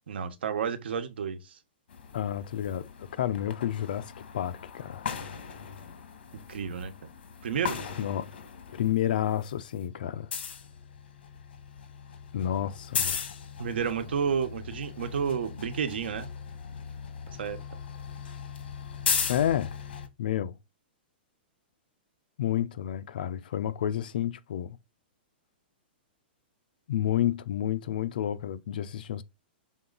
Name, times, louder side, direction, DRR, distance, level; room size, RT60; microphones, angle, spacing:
voice 1, 0.1-1.6 6.5-6.9 7.4-7.8 13.6-16.3 17.4-17.6, right 7 dB, 80° right, 1.2 m, -31 dB
sound 1, 1.9-8.9 9.3-20.1, left 7 dB, 75° left, 1.5 m, -37 dB
voice 2, 2.1-5.1 8.0-8.3 8.8-10.3 12.3-13.2 19.3-19.7 20.2-20.6 22.4-24.8 26.9-29.2, left 10 dB, 55° left, 0.6 m, -30 dB
6.3 x 3.8 x 3.9 m
hypercardioid pair, 175°, 6 cm